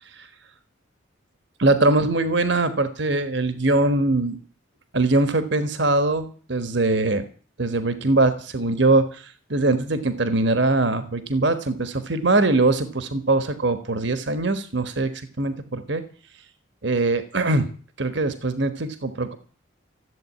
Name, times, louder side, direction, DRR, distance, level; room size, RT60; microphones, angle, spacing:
voice 1, 1.6-4.4 4.9-7.3 7.6-16.0 16.8-17.7 18.0-19.3, right 2 dB, 55° right, 11 dB, 1.3 m, -22 dB
14.5 x 8.2 x 9.5 m, 0.41 s
head